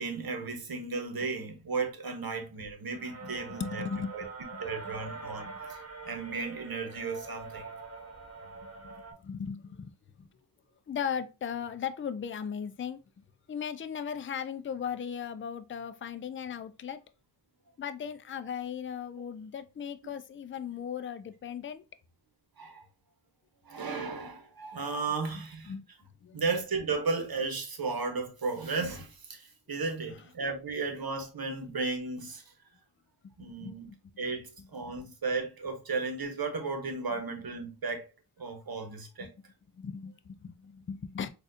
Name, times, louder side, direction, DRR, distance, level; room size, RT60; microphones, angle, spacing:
voice 1, 0.0-3.8 4.1-4.3 4.6-7.7 20.0-20.1 22.6-22.8 23.6-25.7 26.3-32.4 33.4-33.9 34.2-38.1 38.4-39.3, right 4 dB, 60° right, 1.1 m, -34 dB
sound 1, 2.9-9.1, right 4 dB, 35° right, 0.9 m, -44 dB
voice 2, 3.6-4.1 5.5-5.6 8.8-8.9 9.2-9.9 10.2-10.3 10.9-13.0 13.5-17.0 17.8-21.8 25.7-25.9 26.2-26.4 33.5-34.0 34.8-34.9 39.2-39.3 39.7-41.3, left 7 dB, 30° left, 0.4 m, -37 dB
4.1 x 2.5 x 2.5 m
cardioid pair, 55°, 41 cm